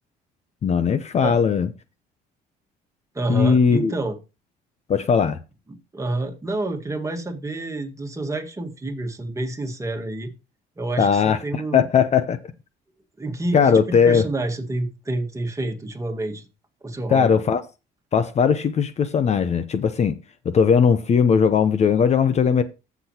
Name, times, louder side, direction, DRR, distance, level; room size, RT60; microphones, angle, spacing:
voice 1, 0.6-1.7 3.3-3.9 4.9-5.4 11.0-12.4 13.5-14.3 17.1-17.6 18.1-20.2 20.4-22.6, left 6 dB, 40° left, 0.7 m, -19 dB
voice 2, 3.1-4.2 5.7-10.3 10.8-11.9 13.2-13.8 14.0-16.5 16.8-17.4, right 2 dB, 20° right, 1.7 m, -28 dB
15.0 x 6.0 x 2.9 m
cardioid pair, 110°, 17 cm